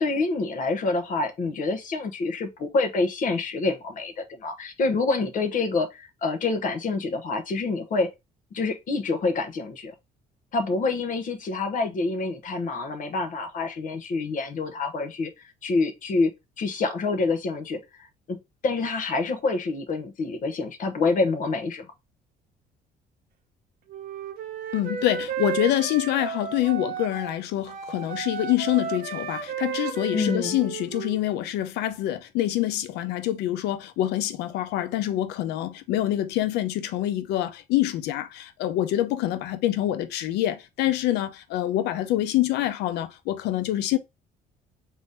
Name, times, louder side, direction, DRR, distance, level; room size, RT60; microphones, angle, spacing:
voice 1, 0.0-8.1 8.5-9.9 10.5-16.3 16.6-17.8 18.3-21.9 30.1-30.6, left 3 dB, 50° left, 1.0 m, -27 dB
Wind instrument woodwind instrument, 23.9-27.4 27.6-31.2, right 7 dB, 55° right, 0.9 m, -33 dB
voice 2, 24.7-44.0, left 13 dB, 85° left, 0.6 m, -26 dB
3.7 x 3.0 x 3.9 m
cardioid pair, 110°, 17 cm